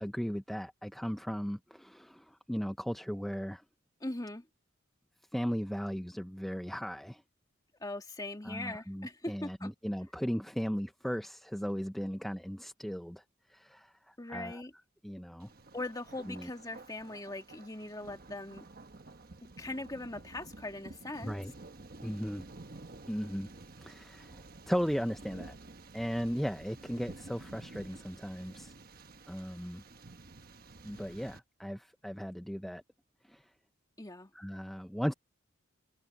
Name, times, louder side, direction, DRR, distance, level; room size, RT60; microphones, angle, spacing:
voice 1, 0.0-3.6 5.3-7.2 8.4-13.2 13.5-14.6 15.0-15.5 16.3-16.5 21.2-21.5 22.0-22.4 23.1-23.5 23.8-25.6 25.9-28.7 29.3-29.8 30.8-32.8 33.2-33.5 34.3-35.1, equal, ahead, 0.6 m, -37 dB
voice 2, 4.0-4.5 7.8-9.7 14.2-14.7 15.7-18.7 19.6-21.4 34.0-34.3, left 2 dB, 20° left, 1.9 m, -40 dB
Thunder, 15.4-31.4, right 2 dB, 50° right, 1.2 m, -51 dB
head